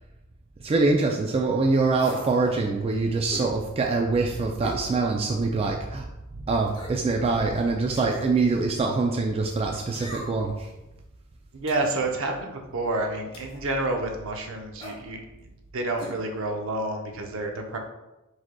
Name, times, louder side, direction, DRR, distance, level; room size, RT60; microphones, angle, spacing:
voice 1, 0.6-6.1 6.4-10.7, right 3 dB, 25° right, 1 dB, 0.3 m, -24 dB
sound 1, 2.0-2.3 3.3-3.5 4.6-4.8 5.3-5.4 6.7-7.1 8.0-8.3 9.9-10.5 11.7-12.0 13.3-13.6 14.8-15.0 16.0-16.2 16.4-16.5, left 1 dB, 25° left, 1.2 m, -40 dB
voice 2, 11.5-17.8, right 2 dB, 65° right, 2 dB, 0.7 m, -29 dB
4.8 x 4.3 x 2.2 m, 0.98 s
head